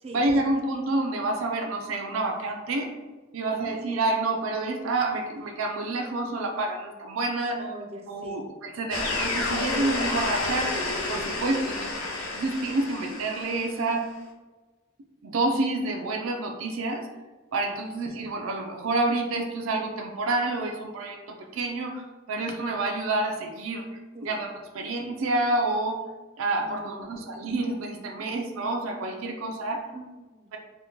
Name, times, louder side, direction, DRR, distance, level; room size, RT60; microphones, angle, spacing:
voice 1, 0.1-2.9 3.3-7.6 8.1-10.7 11.1-11.9 12.3-14.1 15.2-17.1 17.5-22.0 22.3-23.9 24.2-26.0 26.4-29.8, right 2 dB, 90° right, 3 dB, 0.4 m, -28 dB
voice 2, 3.4-3.8 7.6-8.4 11.2-11.6 17.8-18.2 24.1-24.4 26.5-27.2 29.9-30.5, right 1 dB, 30° right, 2 dB, 0.4 m, -44 dB
sound 1, 8.9-13.9, left 2 dB, 85° left, 0.6 m, -30 dB
2.9 x 2.2 x 3.6 m, 1.2 s
head